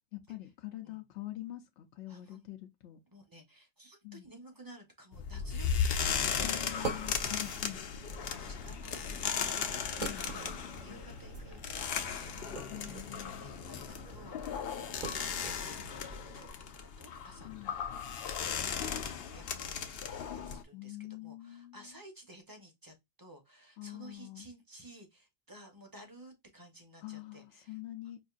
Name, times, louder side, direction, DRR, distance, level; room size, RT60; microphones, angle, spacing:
voice 1, 0.1-3.0 4.0-4.3 6.4-7.8 10.0-10.9 12.7-13.4 17.4-17.8 20.7-22.0 23.8-24.5 27.0-28.2, left 15 dB, 85° left, 0.9 m, -45 dB
voice 2, 2.1-2.5 3.1-7.0 8.2-17.5 17.8-18.1 18.8-27.8, right 1 dB, 20° right, 0.8 m, -55 dB
sound 1, 5.1-20.6, left 7 dB, 65° left, 0.8 m, -36 dB
sound 2, 6.1-16.5, right 3 dB, 45° right, 1.1 m, -45 dB
5.2 x 2.6 x 2.4 m
omnidirectional pair, 1.2 m